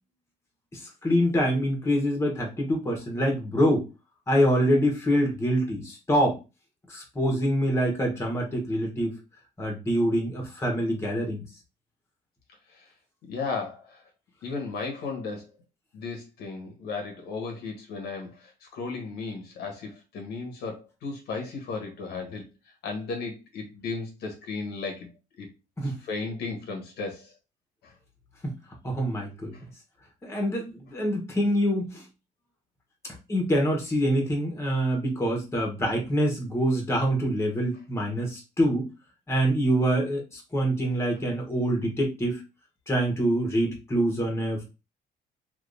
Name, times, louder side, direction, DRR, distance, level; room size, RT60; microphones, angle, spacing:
voice 1, 0.7-3.8 4.3-6.4 6.9-9.2 9.6-11.4 25.8-25.9 28.8-29.5 30.2-32.0 33.3-38.9 39.3-42.4 42.9-44.6, equal, 15° left, 1 dB, 1.2 m, -25 dB
voice 2, 13.3-14.0 14.4-15.5 15.9-22.5 22.8-25.1 25.4-25.5 25.8-27.3 27.8-27.9 29.5-29.6, left 4 dB, 75° left, 2 dB, 1.3 m, -35 dB
3.5 x 2.7 x 2.6 m, 0.28 s
cardioid pair, 110°, 17 cm